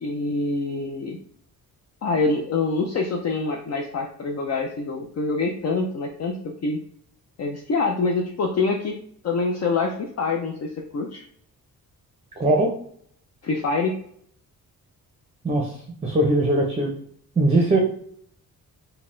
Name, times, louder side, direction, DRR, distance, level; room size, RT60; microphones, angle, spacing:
voice 1, 0.0-1.2 2.0-6.8 7.4-9.0 9.2-11.2 13.4-14.0, left 3 dB, 45° left, 2 dB, 0.5 m, -25 dB
voice 2, 12.4-12.7 15.4-15.8 16.0-16.9 17.4-17.8, right 2 dB, 20° right, 0 dB, 0.6 m, -20 dB
4.0 x 2.2 x 3.7 m, 0.62 s
wide cardioid pair, 140°, 36 cm